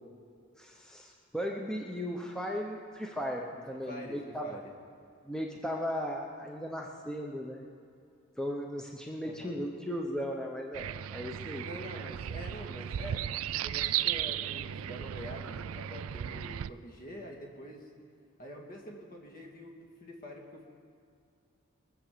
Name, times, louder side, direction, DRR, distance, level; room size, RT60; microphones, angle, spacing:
voice 1, 0.6-4.6 5.2-7.6 8.4-11.7, equal, 5° left, 0 dB, 0.9 m, -36 dB
voice 2, 3.5-4.7 9.2-9.6 11.6-13.2 13.6-17.9 18.4-20.6, equal, 45° left, 0 dB, 2.4 m, -46 dB
sound 1, 10.7-16.7, right 11 dB, 85° right, 0.4 m, -35 dB
22.0 x 7.6 x 6.8 m, 2.4 s
head